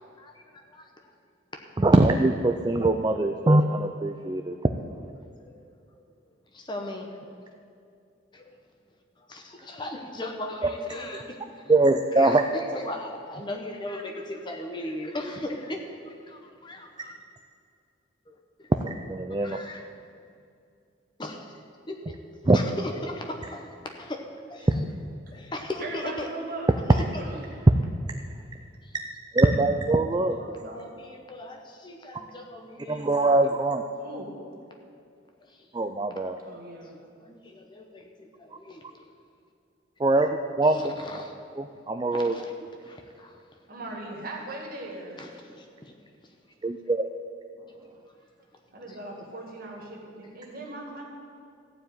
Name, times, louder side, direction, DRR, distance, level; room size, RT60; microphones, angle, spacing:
voice 1, 0.2-1.1 5.2-5.6 5.9-7.2 8.3-8.6 9.2-11.4 12.1-17.1 18.3-18.7 19.4-19.9 21.2-21.6 21.9-22.2 22.5-24.2 24.5-24.9 25.3-26.3 26.9-27.2 28.8-28.9 30.6-33.1 35.4-35.7 36.8-39.1 40.6-41.3 42.1-42.5 42.8-43.4 45.2-46.0 46.2-46.3 48.9-49.0, left 1 dB, 25° left, 3 dB, 0.9 m, -38 dB
voice 2, 1.8-4.7 11.7-12.4 18.8-19.6 22.5-22.6 29.3-30.4 32.9-33.8 35.7-36.4 40.0-40.3 40.6-40.9 41.9-42.3 46.6-47.0, right 2 dB, 20° right, 5 dB, 0.4 m, -22 dB
voice 3, 25.8-26.7 27.2-27.5 30.2-31.0 34.0-34.4 36.4-37.0 43.7-45.2 48.7-51.0, right 2 dB, 45° right, -1 dB, 2.1 m, -39 dB
14.5 x 4.9 x 9.1 m, 2.4 s
head